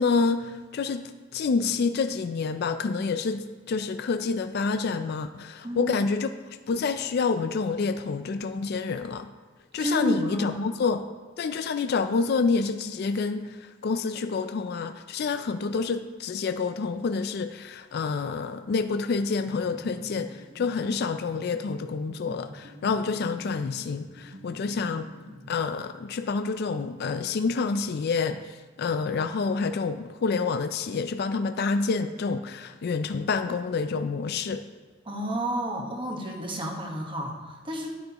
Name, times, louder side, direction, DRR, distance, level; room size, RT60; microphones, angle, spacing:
voice 1, 0.0-6.3 6.7-9.3 9.7-11.0 11.4-25.1 25.5-28.4 28.8-34.6, left 4 dB, 55° left, 9 dB, 0.4 m, -28 dB
voice 2, 5.6-6.0 9.8-10.6 35.0-37.9, equal, 25° right, 0 dB, 1.3 m, -30 dB
sound 1, 19.5-26.2, equal, 75° right, 3.1 m, -47 dB
11.5 x 9.1 x 3.0 m, 1.4 s
head